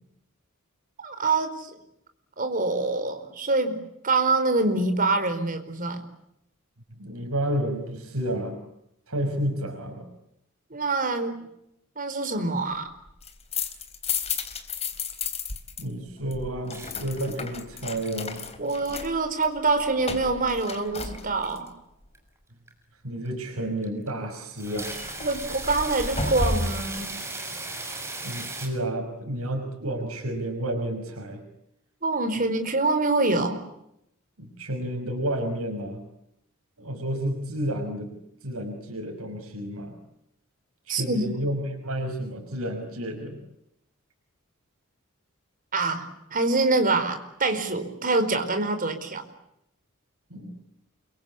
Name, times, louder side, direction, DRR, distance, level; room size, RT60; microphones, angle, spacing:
voice 1, 1.0-1.7 2.4-6.0 10.7-11.4 12.0-12.9 18.6-21.7 25.2-27.1 32.0-33.6 40.9-41.3 45.7-49.2, right 3 dB, 40° right, 7 dB, 4.6 m, -25 dB
voice 2, 7.0-8.6 9.1-10.0 15.8-18.4 23.0-25.0 28.2-31.4 34.4-36.0 36.8-38.1 38.4-39.9 40.9-43.4 50.3-50.5, right 1 dB, 85° right, 3 dB, 5.6 m, -31 dB
sound 1, 13.1-15.8 16.1-21.7 24.7-27.0, left 4 dB, 30° left, 3.4 m, -33 dB
sound 2, 16.7-17.6 17.9-18.4 18.8-19.4 19.8-19.9 20.7-21.2 21.4-21.6 22.1-22.2 22.7-22.8 23.2-23.3 23.8-24.1 24.4-28.7, right 2 dB, 15° right, 6.5 m, -36 dB
28.5 x 24.0 x 8.6 m, 0.80 s
head